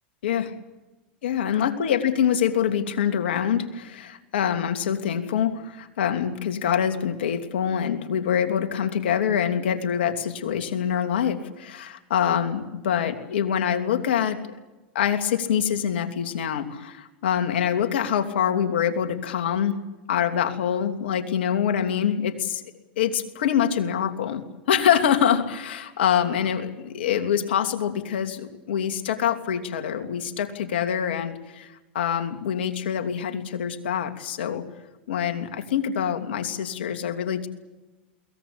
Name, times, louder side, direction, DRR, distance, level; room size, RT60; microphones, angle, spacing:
voice 1, 0.2-0.5 1.2-14.6 14.9-19.8 20.1-22.6 23.0-34.6 35.1-37.5, left 8 dB, 80° left, 6 dB, 2.9 m, -25 dB
22.5 x 19.0 x 8.7 m, 1.1 s
hypercardioid pair, 105°, 6 cm